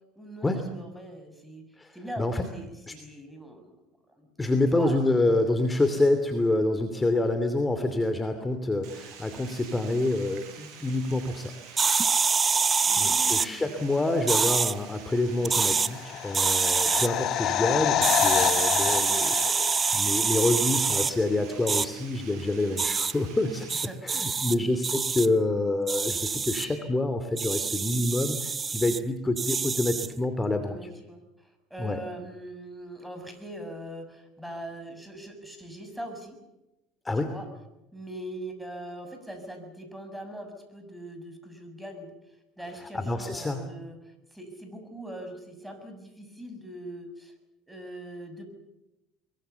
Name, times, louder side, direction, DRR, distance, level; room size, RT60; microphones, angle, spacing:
voice 1, 0.2-3.8 4.1-4.3 4.7-5.0 12.9-13.7 23.7-24.8 30.6-36.4 37.3-37.5 37.9-42.1 42.6-47.3 47.7-48.5, right 1 dB, 5° right, 6 dB, 7.2 m, -42 dB
voice 2, 1.8-2.4 2.9-3.0 4.4-11.5 13.0-23.7 24.0-30.7 31.8-32.0 37.0-37.3 42.9-43.6, left 2 dB, 15° left, 8 dB, 2.9 m, -27 dB
Water, 8.8-23.8, right 7 dB, 55° right, 7.8 m, -48 dB
sound 1, 11.8-13.5 14.3-14.7 15.4-15.9 16.3-17.1 18.0-21.1 21.7-21.9 22.8-23.1 23.7-24.5 24.8-25.3 25.9-26.6 27.4-29.0 29.4-30.1, right 5 dB, 25° right, 0.8 m, -25 dB
sound 2, 15.6-20.5 20.8-20.9, left 12 dB, 55° left, 1.3 m, -28 dB
24.5 x 23.5 x 7.1 m, 0.96 s
hypercardioid pair, 85°, 0 cm